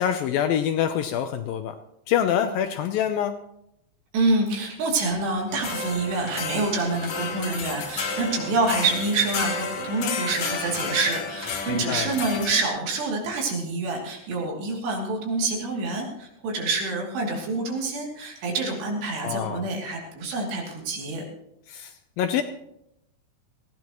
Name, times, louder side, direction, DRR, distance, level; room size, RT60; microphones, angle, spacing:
voice 1, 0.0-1.8 2.1-3.3 11.7-12.2 19.2-19.6 21.7-22.4, left 9 dB, 75° left, 8 dB, 2.2 m, -25 dB
voice 2, 4.1-21.2, right 3 dB, 85° right, 0 dB, 5.0 m, -27 dB
sound 1, 5.5-12.6, left 4 dB, 55° left, 1.8 m, -32 dB
20.0 x 16.0 x 3.1 m, 0.78 s
omnidirectional pair, 4.7 m